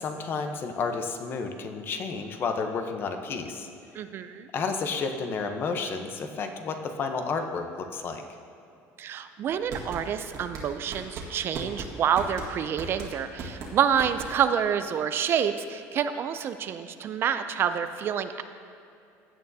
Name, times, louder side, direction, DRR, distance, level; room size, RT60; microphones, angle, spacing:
voice 1, 0.0-3.7 4.5-8.2, left 4 dB, 40° left, 5 dB, 0.8 m, -31 dB
voice 2, 3.9-4.5 9.0-18.4, right 8 dB, 40° right, 10 dB, 0.4 m, -28 dB
sound 1, 9.5-14.6, right 3 dB, 55° right, 1.7 m, -38 dB
16.0 x 8.7 x 2.7 m, 2.6 s
cardioid pair, 145°, 6 cm